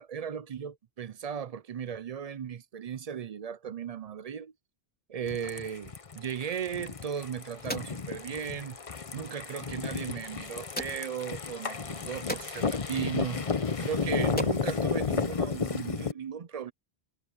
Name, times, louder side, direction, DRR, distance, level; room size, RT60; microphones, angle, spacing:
voice 1, 0.0-4.5 5.1-8.8 9.1-13.5 13.8-16.7, right 8 dB, 45° right, 0.5 m, -36 dB
sound 1, 5.3-16.1, left 5 dB, 35° left, 0.8 m, -33 dB
sound 2, 6.9-15.8, equal, 10° left, 3.8 m, -44 dB
omnidirectional pair, 1.0 m